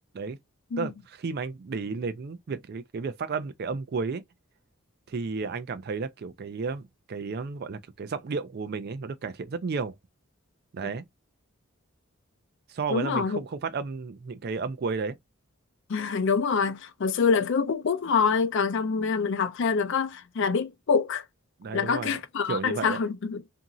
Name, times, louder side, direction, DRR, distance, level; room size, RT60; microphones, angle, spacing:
voice 1, 0.8-4.2 5.1-10.0 10.7-11.0 12.7-15.2 21.6-22.2 22.5-23.0, right 4 dB, 50° right, 0.4 m, -32 dB
voice 2, 12.9-13.4 15.9-21.2 21.7-23.4, left 5 dB, 60° left, 0.4 m, -26 dB
2.8 x 2.6 x 2.4 m
head